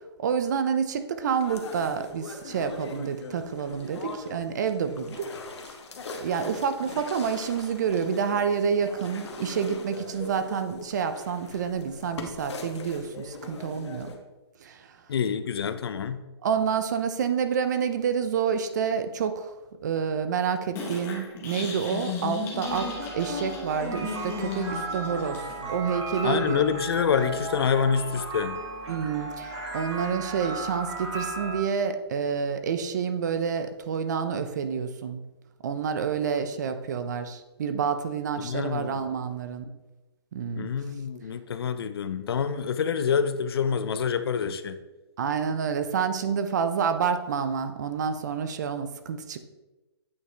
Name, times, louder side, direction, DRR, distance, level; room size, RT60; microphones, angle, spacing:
voice 1, 0.2-5.3 5.6-5.7 6.2-14.1 14.6-14.9 16.4-19.5 19.8-25.4 25.7-26.6 27.1-27.3 28.9-35.2 35.6-39.7 40.3-40.7 45.2-49.4, right 6 dB, 40° right, 10 dB, 0.5 m, -28 dB
sound 1, 1.3-14.2, left 3 dB, 75° left, 1.1 m, -41 dB
voice 2, 15.1-16.2 26.2-28.6 38.4-39.1 40.6-44.8, left 7 dB, 60° left, 11 dB, 0.5 m, -27 dB
sound 2, 20.8-25.7, left 4 dB, 15° left, 1.0 m, -35 dB
sound 3, 22.6-31.6, right 2 dB, 80° right, 2.1 m, -36 dB
8.4 x 4.7 x 3.3 m, 1.1 s
hypercardioid pair, 165°, 15 cm